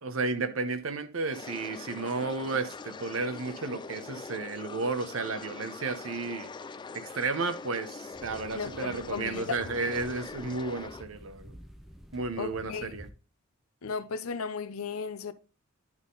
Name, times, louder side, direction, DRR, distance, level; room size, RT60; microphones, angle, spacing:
voice 1, 0.0-6.5 6.9-11.5 12.1-13.1, right 3 dB, 70° right, 0.9 m, -33 dB
sound 1, 1.3-11.0, left 4 dB, 20° left, 0.3 m, -43 dB
sound 2, 8.1-13.1, equal, ahead, 0.7 m, -50 dB
voice 2, 8.5-9.6 12.4-12.9 13.8-15.3, left 5 dB, 90° left, 0.6 m, -35 dB
11.0 x 3.8 x 3.9 m
head